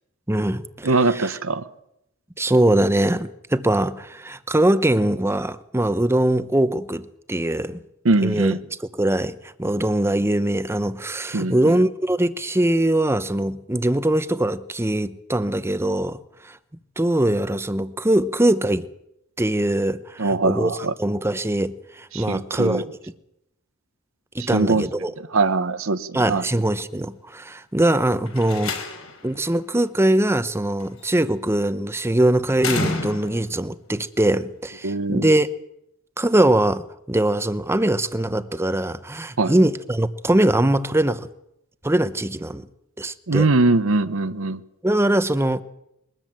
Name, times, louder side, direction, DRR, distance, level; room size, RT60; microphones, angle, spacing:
voice 1, 0.3-0.9 2.4-7.8 8.2-8.5 9.0-16.2 16.4-16.6 17.0-18.9 19.4-20.7 21.0-22.8 24.3-25.1 26.1-28.8 29.2-35.5 36.2-41.3 41.8-42.7 43.0-43.5 44.8-45.6, right 1 dB, 10° right, 0.8 m, -22 dB
voice 2, 0.8-1.7 8.0-8.6 11.3-11.8 20.2-20.9 22.1-22.8 24.4-24.9 25.2-26.4 34.8-35.3 39.4-39.5 43.3-44.6, right 3 dB, 70° right, 0.9 m, -22 dB
Slam, 28.3-29.3 30.8-31.2 32.6-33.6, left 4 dB, 70° left, 4.3 m, -29 dB
22.0 x 13.5 x 8.9 m
head